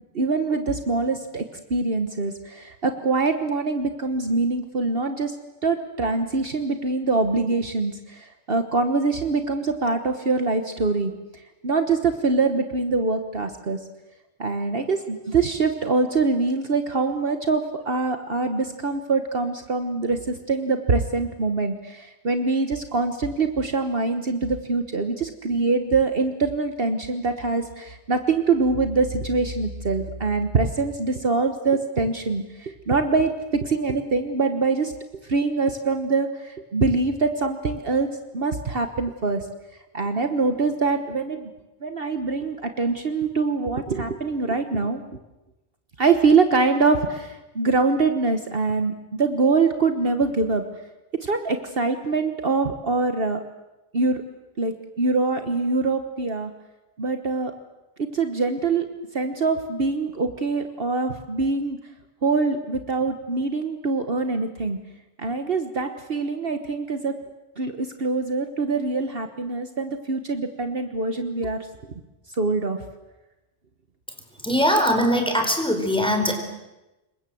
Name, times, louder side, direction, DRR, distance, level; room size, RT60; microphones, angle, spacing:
voice 1, 0.1-5.4 5.6-11.1 11.6-13.8 14.4-34.9 35.3-38.1 38.3-39.5 39.9-41.5 41.8-45.0 46.0-50.6 51.2-53.4 53.9-54.2 54.6-56.5 57.0-57.5 58.1-58.9 59.1-61.8 62.2-64.8 65.2-67.2 67.6-72.0 72.3-72.8, right 3 dB, 55° right, 7 dB, 1.5 m, -24 dB
voice 2, 74.4-76.4, equal, 5° left, 4 dB, 4.6 m, -21 dB
26.5 x 23.0 x 7.8 m, 1.0 s
omnidirectional pair, 1.2 m